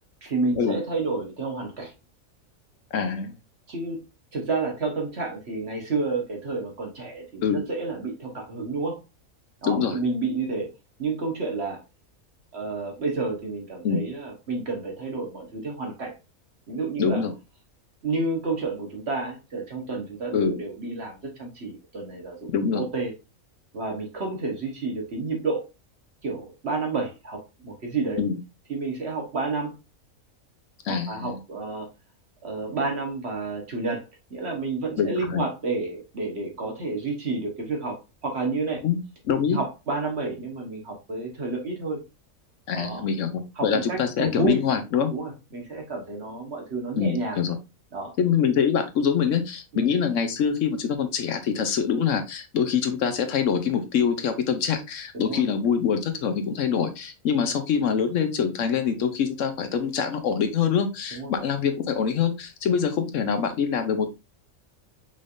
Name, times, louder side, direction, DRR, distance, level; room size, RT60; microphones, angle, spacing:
voice 1, 0.2-1.9 3.7-4.0 4.3-9.0 9.6-10.7 11.0-11.8 12.5-16.1 16.7-17.2 18.0-22.5 22.7-23.1 23.7-25.6 26.2-28.2 28.7-29.7 30.9-31.9 32.4-34.0 34.3-38.8 39.5-42.0 42.7-43.1 43.6-44.6 45.1-47.4 47.9-48.1 49.7-49.9 55.1-55.4 61.1-61.3, right 3 dB, 50° right, 1 dB, 1.5 m, -30 dB
voice 2, 2.9-3.4 7.4-7.6 9.6-10.0 13.8-14.0 17.0-17.3 20.3-20.5 22.5-22.8 28.2-28.4 30.8-31.4 35.0-35.4 38.8-39.0 39.2-39.6 42.7-45.1 47.0-47.6 48.2-64.2, left 7 dB, 70° left, 8 dB, 1.0 m, -24 dB
5.5 x 3.4 x 2.5 m, 0.26 s
omnidirectional pair, 1.4 m